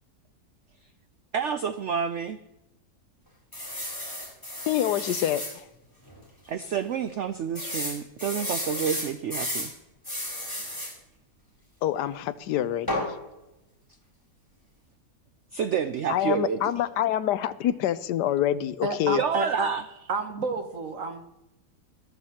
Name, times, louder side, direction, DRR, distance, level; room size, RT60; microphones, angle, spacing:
voice 1, 1.3-2.4 6.5-9.7 15.5-16.7 19.1-19.8, right 7 dB, 70° right, 10 dB, 0.7 m, -29 dB
sound 1, 3.5-5.5 6.1-6.2 6.5-6.6 7.6-9.7 10.0-10.9 12.9-13.1, left 1 dB, 10° left, 4.1 m, -33 dB
voice 2, 4.7-5.4 11.8-13.1 16.1-19.2, left 12 dB, 80° left, 15 dB, 1.2 m, -26 dB
voice 3, 18.8-19.7 20.1-21.2, right 3 dB, 55° right, 7 dB, 1.3 m, -30 dB
13.5 x 13.0 x 2.9 m, 0.93 s
omnidirectional pair, 1.8 m